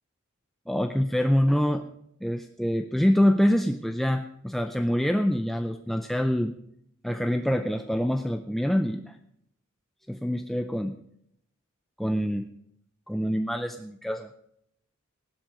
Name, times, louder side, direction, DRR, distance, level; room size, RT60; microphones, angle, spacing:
voice 1, 0.7-1.8 2.2-6.6 7.0-9.2 10.1-11.0 12.0-12.5 13.1-14.3, equal, ahead, 6 dB, 0.5 m, -25 dB
17.0 x 12.0 x 5.2 m, 0.74 s
head